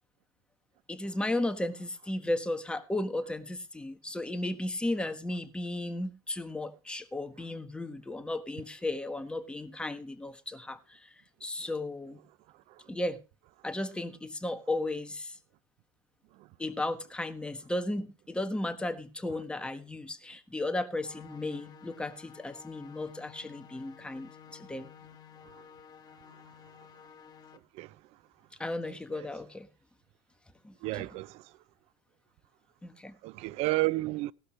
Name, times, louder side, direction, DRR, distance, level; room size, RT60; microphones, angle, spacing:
voice 1, 0.9-11.1 11.4-12.2 12.9-13.2 13.6-15.4 16.6-24.9 28.6-29.7 30.6-31.1 32.8-33.2, left 1 dB, 10° left, 1.3 m, -35 dB
sound 1, 21.0-27.6, left 8 dB, 30° left, 1.6 m, -53 dB
voice 2, 28.8-29.3 30.8-31.5 33.2-34.3, right 20 dB, 55° right, 0.6 m, -32 dB
17.0 x 12.5 x 3.2 m
supercardioid pair, 120°, 12 cm